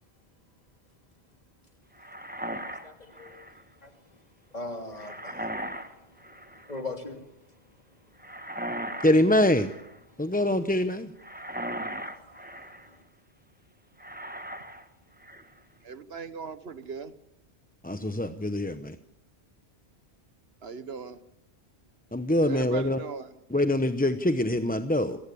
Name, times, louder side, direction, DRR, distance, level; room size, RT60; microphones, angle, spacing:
sound 1, 2.0-3.6 4.9-5.9 6.2-6.8 8.2-9.2 9.4-10.0 11.2-12.9 14.0-14.8 15.2-15.6, right 1 dB, 10° right, 1.4 m, -38 dB
voice 1, 2.8-3.4 3.8-3.9 4.5-5.8 6.3-7.3 11.5-12.0 12.9-13.0, left 2 dB, 40° left, 5 dB, 2.9 m, -40 dB
voice 2, 9.0-9.7 10.2-11.1 17.8-19.0 22.1-23.0 23.5-25.2, left 1 dB, 10° left, 9 dB, 0.7 m, -24 dB
voice 3, 15.8-17.1 20.6-21.2 22.4-23.3, right 5 dB, 65° right, 13 dB, 1.4 m, -38 dB
26.5 x 15.5 x 8.5 m, 0.83 s
omnidirectional pair, 1.1 m